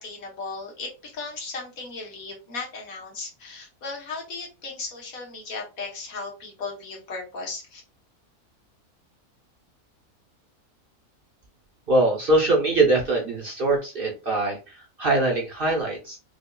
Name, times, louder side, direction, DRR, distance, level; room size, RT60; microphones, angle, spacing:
voice 1, 0.0-7.8, left 3 dB, 65° left, -1 dB, 1.6 m, -36 dB
voice 2, 11.9-16.2, right 2 dB, 45° right, -2 dB, 0.9 m, -22 dB
5.1 x 2.4 x 2.3 m, 0.31 s
omnidirectional pair, 1.6 m